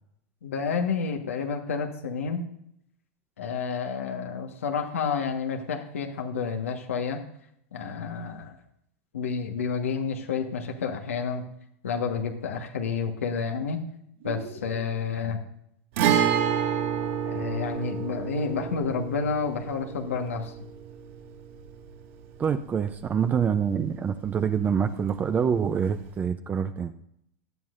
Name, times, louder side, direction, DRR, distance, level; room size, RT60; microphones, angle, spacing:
voice 1, 0.4-2.4 3.4-7.2 7.7-8.6 9.1-11.4 11.8-13.8 14.2-15.4 17.2-20.5, left 5 dB, 90° left, 2 dB, 1.4 m, -30 dB
sound 1, 14.2-15.1 16.2-17.1, right 4 dB, 85° right, 5.2 m, -42 dB
Guitar, 16.0-23.6 23.8-23.9 26.0-26.1, right 9 dB, 70° right, 3.3 m, -29 dB
voice 2, 22.4-26.9, right 7 dB, 25° right, 9 dB, 0.6 m, -26 dB
17.5 x 11.0 x 2.6 m, 0.74 s
hypercardioid pair, 115°, 7 cm